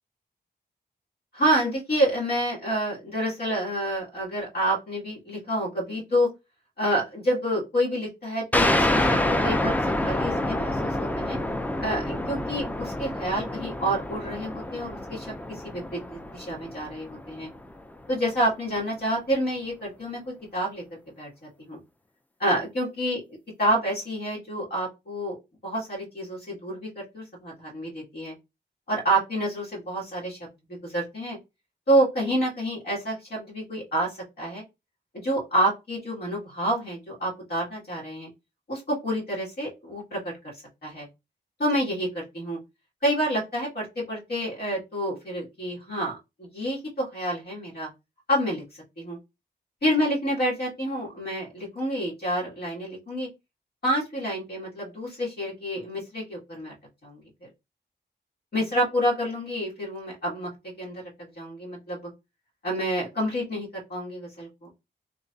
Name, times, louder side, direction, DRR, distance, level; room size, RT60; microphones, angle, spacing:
voice 1, 1.3-6.3 6.8-11.4 11.8-17.5 18.1-20.8 21.2-21.3 21.6-21.8 22.4-23.2 23.6-25.4 25.6-28.3 28.9-31.4 31.9-34.6 35.1-38.3 38.7-40.2 40.8-41.1 41.6-42.6 43.0-47.9 48.3-49.2 49.8-53.3 53.8-56.7 57.0-57.5 58.5-60.5 60.8-62.1 62.6-64.7, right 1 dB, 60° left, -4 dB, 2.2 m, -28 dB
sound 1, 8.5-17.7, left 1 dB, 10° left, 0.4 m, -27 dB
3.8 x 3.3 x 2.7 m, 0.24 s
wide cardioid pair, 100°, 18 cm